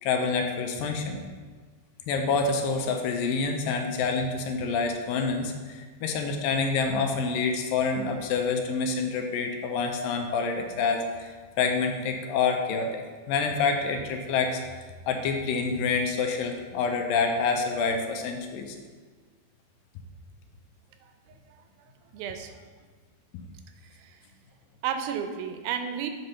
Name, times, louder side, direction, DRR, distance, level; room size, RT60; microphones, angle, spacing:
voice 1, 0.0-1.2 2.1-18.8, left 4 dB, 80° left, 4 dB, 2.3 m, -27 dB
voice 2, 21.0-21.4 22.1-22.6 23.8-24.3 24.8-26.1, right 8 dB, 85° right, 7 dB, 2.4 m, -33 dB
8.1 x 3.9 x 5.6 m, 1.5 s
omnidirectional pair, 4.2 m